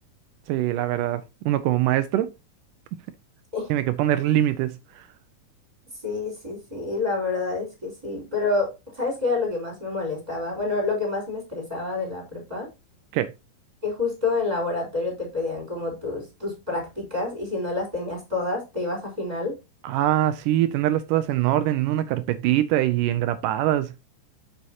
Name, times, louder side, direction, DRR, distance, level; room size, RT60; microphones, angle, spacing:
voice 1, 0.5-2.3 3.7-5.1 13.1-13.3 19.8-23.9, right 13 dB, 80° right, 2.0 m, -23 dB
voice 2, 6.0-12.7 13.8-19.5, left 3 dB, 10° right, 4.2 m, -28 dB
7.7 x 7.0 x 2.8 m
omnidirectional pair, 4.0 m